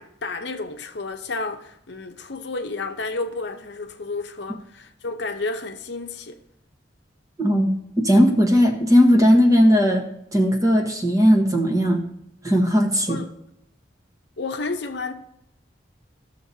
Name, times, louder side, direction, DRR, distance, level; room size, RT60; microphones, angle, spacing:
voice 1, 0.0-6.4 13.1-13.3 14.4-15.1, left 3 dB, 65° left, 0.8 m, -31 dB
voice 2, 7.4-7.7 8.0-10.0 10.3-12.0 12.4-13.2, equal, 20° right, 1.2 m, -17 dB
15.0 x 6.6 x 2.8 m
head